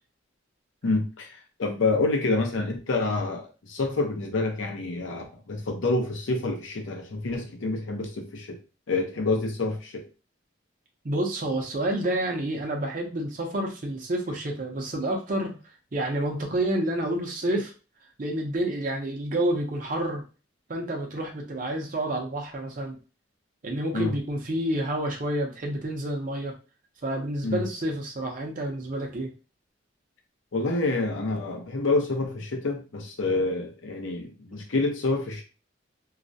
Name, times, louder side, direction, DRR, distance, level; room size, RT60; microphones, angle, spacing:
voice 1, 0.8-8.6 8.9-10.1 23.9-24.1 27.4-27.6 30.5-35.4, left 3 dB, 75° left, 3 dB, 0.6 m, -27 dB
voice 2, 11.0-15.5 15.9-17.7 18.2-20.2 20.7-23.0 23.6-26.5 27.0-29.3, right 1 dB, 40° right, 1 dB, 0.6 m, -29 dB
2.3 x 2.0 x 2.6 m, 0.33 s
head